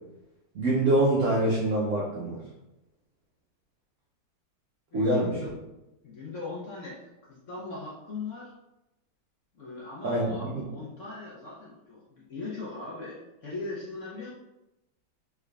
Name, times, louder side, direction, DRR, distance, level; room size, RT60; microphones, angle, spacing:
voice 1, 0.5-2.4 4.9-5.4 10.0-10.5, right 1 dB, 75° right, -4 dB, 0.7 m, -25 dB
voice 2, 4.9-5.5 6.0-8.5 9.5-14.3, left 3 dB, 60° left, -6 dB, 0.8 m, -39 dB
3.5 x 3.2 x 2.4 m, 0.96 s
omnidirectional pair, 2.0 m